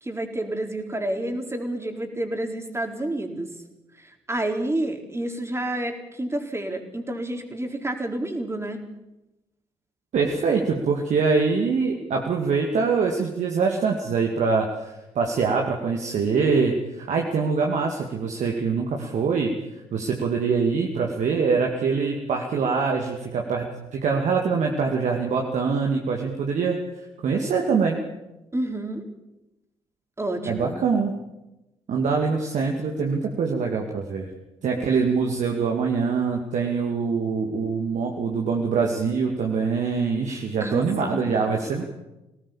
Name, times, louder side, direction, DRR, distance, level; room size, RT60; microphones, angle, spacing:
voice 1, 0.0-3.5 4.3-8.8 28.5-29.1 30.2-30.7 40.6-41.3, right 1 dB, 20° right, 4 dB, 4.0 m, -29 dB
voice 2, 10.1-14.7 15.1-19.5 19.9-23.7 23.9-26.8 27.2-28.0 30.5-31.1 31.9-34.3 34.6-41.8, right 5 dB, 55° right, 1 dB, 2.5 m, -24 dB
23.0 x 18.0 x 7.3 m, 0.98 s
figure-of-eight pair, 45°, 15 cm